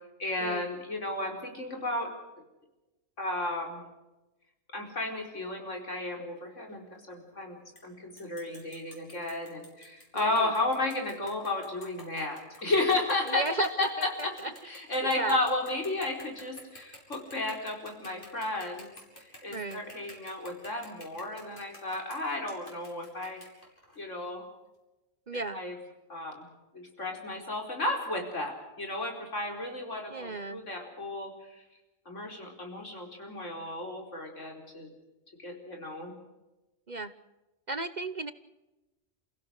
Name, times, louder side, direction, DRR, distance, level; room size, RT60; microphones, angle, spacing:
voice 1, 0.2-2.1 3.2-3.8 4.7-7.6 7.8-23.4 24.0-24.4 25.5-25.7 26.1-26.5 26.7-31.6 32.0-34.9 35.4-36.1, left 2 dB, 75° left, 2 dB, 5.0 m, -33 dB
sound 1, 7.8-7.9 8.2-24.0, left 1 dB, 40° left, 6.0 m, -51 dB
voice 2, 10.1-10.5 13.3-14.5 15.0-15.4 19.5-19.8 25.3-25.6 30.1-30.6 36.9-37.1 37.7-38.3, right 3 dB, 40° right, 12 dB, 0.9 m, -34 dB
29.5 x 16.5 x 6.5 m, 1.0 s
omnidirectional pair, 1.3 m